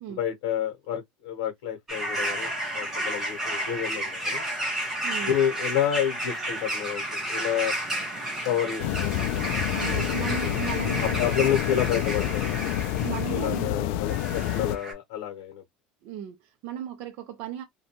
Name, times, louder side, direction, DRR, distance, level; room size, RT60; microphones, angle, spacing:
voice 1, 0.1-4.4 5.2-7.7 8.4-9.2 9.8-10.5 11.2-12.6 13.3-15.6, left 9 dB, 90° left, 0.8 m, -29 dB
sound 1, 1.9-13.7 14.1-14.9, right 1 dB, 10° right, 1.0 m, -32 dB
voice 2, 5.0-5.4 9.7-11.2 13.0-13.9 16.0-17.6, right 11 dB, 55° right, 0.5 m, -36 dB
sound 2, 8.8-14.8, left 12 dB, 65° left, 0.3 m, -28 dB
2.7 x 2.2 x 2.7 m
cardioid pair, 170°, 4 cm